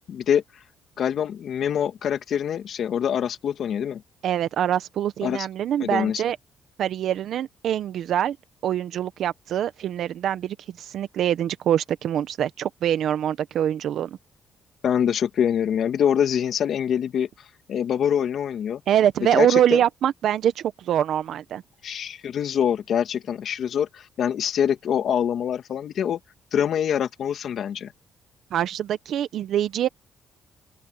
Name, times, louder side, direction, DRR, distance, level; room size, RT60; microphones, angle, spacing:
voice 1, 0.1-0.4 1.0-4.0 5.2-5.5 5.8-6.2 14.8-17.3 17.7-18.8 19.3-19.8 21.8-26.2 26.5-27.9, left 8 dB, 65° left, 2.5 m, -25 dB
voice 2, 4.2-6.4 6.8-8.4 8.6-14.2 18.9-21.6 28.5-29.9, right 10 dB, 70° right, 0.9 m, -24 dB
open air
cardioid pair, 90°, 0 cm